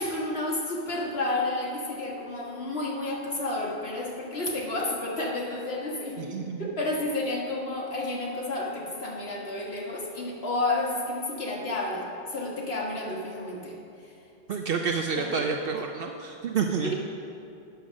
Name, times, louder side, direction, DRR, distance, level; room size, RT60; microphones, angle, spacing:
voice 1, 0.0-13.8 14.0-14.1 15.2-15.5 16.8-16.9, left 2 dB, 75° left, -3 dB, 1.8 m, -31 dB
voice 2, 6.2-6.7 14.5-16.9, right 6 dB, 65° right, 4 dB, 0.7 m, -29 dB
9.2 x 6.6 x 6.2 m, 2.7 s
omnidirectional pair, 1.1 m